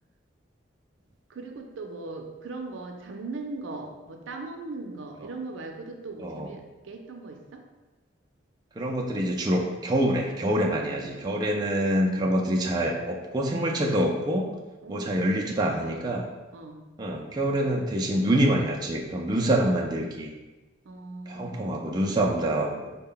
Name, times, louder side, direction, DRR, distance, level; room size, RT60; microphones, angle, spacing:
voice 1, 1.3-7.6 14.8-16.1 16.5-16.8 20.8-21.8, right 3 dB, 85° right, 4 dB, 0.5 m, -39 dB
voice 2, 8.8-14.5 14.9-16.3 17.0-20.3 21.3-22.9, right 1 dB, 20° right, -1 dB, 0.3 m, -26 dB
4.1 x 2.1 x 3.7 m, 1.1 s
head